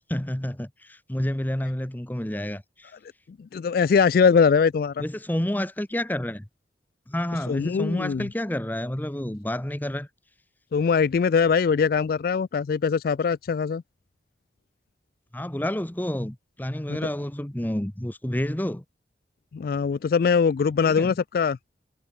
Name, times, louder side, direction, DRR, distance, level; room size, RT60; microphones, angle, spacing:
voice 1, 0.1-2.9 5.0-6.5 7.1-10.1 15.3-18.8 20.8-21.2, left 1 dB, 10° left, 0.8 m, -29 dB
voice 2, 3.4-5.0 7.5-8.2 10.7-13.8 16.9-17.0 19.5-21.6, left 6 dB, 55° left, 0.3 m, -22 dB
head